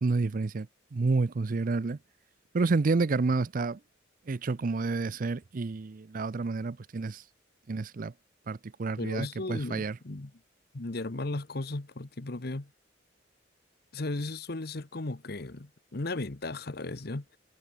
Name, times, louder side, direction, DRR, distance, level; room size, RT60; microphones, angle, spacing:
voice 1, 0.0-2.0 2.5-3.8 4.3-7.2 7.7-8.1 8.5-10.0, right 3 dB, 45° right, 0.5 m, -29 dB
voice 2, 9.0-10.3 10.7-12.7 13.9-17.4, left 2 dB, 55° left, 1.2 m, -36 dB
head